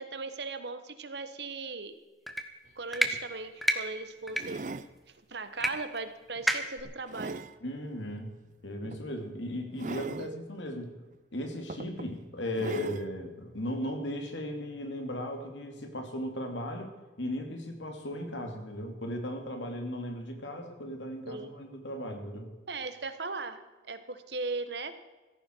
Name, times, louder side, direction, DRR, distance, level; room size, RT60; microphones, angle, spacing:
voice 1, 0.0-1.9 2.8-4.7 5.3-7.4 10.2-10.4 21.3-21.5 22.7-23.6 23.9-24.9, right 3 dB, 65° right, 10 dB, 1.3 m, -38 dB
sound 1, 2.3-2.4 2.9-3.1 3.6-3.8 4.3-4.4 5.6-5.7 6.0-6.1 6.5-6.8, equal, ahead, 0.9 m, -27 dB
sound 2, 2.7-2.8 3.0-3.3 4.3-4.9 5.6-5.8 6.4-7.6 8.8-9.0 9.8-10.3 11.1-11.2 11.7-12.1 12.5-13.1 13.9-14.0, right 3 dB, 40° right, 0.5 m, -40 dB
voice 2, 7.6-8.3 8.6-10.9 11.3-22.5, equal, 85° left, 4 dB, 2.6 m, -37 dB
16.5 x 14.0 x 4.6 m, 1.2 s
head